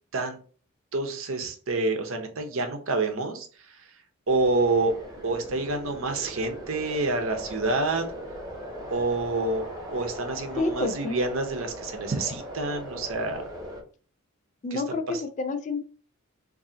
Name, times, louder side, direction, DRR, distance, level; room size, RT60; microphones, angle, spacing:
voice 1, 0.9-3.5 3.8-3.9 4.3-4.9 5.2-8.1 8.9-13.5 14.7-14.8 15.1-15.2, right 3 dB, 60° right, 6 dB, 0.7 m, -28 dB
sound 1, 4.3-13.8, equal, 15° right, 0.9 m, -39 dB
voice 2, 10.6-11.2 14.6-15.8, left 3 dB, 35° left, 9 dB, 0.3 m, -29 dB
3.8 x 2.6 x 2.7 m, 0.40 s
head